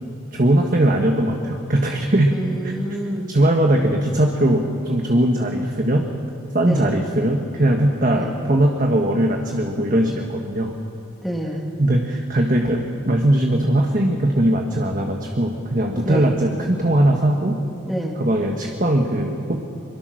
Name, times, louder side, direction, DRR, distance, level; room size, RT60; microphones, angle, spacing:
voice 1, 0.3-2.7 3.3-6.1 6.5-10.7 11.8-17.6 18.2-19.6, right 1 dB, 40° right, 2 dB, 1.4 m, -20 dB
voice 2, 2.3-3.3 6.6-6.9 8.1-8.3 11.2-11.6 16.0-16.3 17.9-18.2, right 1 dB, ahead, 0 dB, 2.3 m, -27 dB
24.5 x 22.5 x 6.4 m, 2.7 s
head